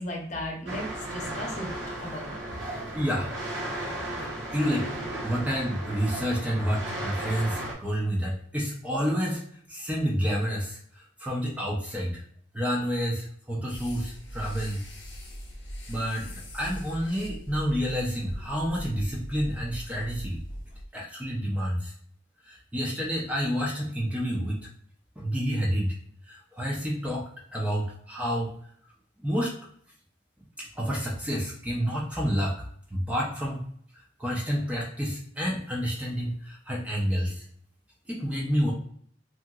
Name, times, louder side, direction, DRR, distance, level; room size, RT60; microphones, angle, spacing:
voice 1, 0.0-1.7 2.0-2.3, left 1 dB, 40° left, -1 dB, 0.8 m, -35 dB
sound 1, 0.7-7.7, right 1 dB, 70° right, 0.9 m, -35 dB
voice 2, 2.9-3.3 4.5-4.9 5.2-9.4 9.7-10.8 11.2-12.2 12.5-14.8 15.9-20.4 20.9-21.9 22.5-24.6 25.2-25.9 26.3-27.2 27.5-28.5 29.2-29.5 30.6-32.5 32.9-33.6 34.2-37.4 38.1-38.7, equal, 5° right, -3 dB, 0.4 m, -29 dB
sound 2, 13.7-20.8, equal, 80° left, 0.7 m, -40 dB
2.8 x 2.7 x 2.3 m, 0.62 s
head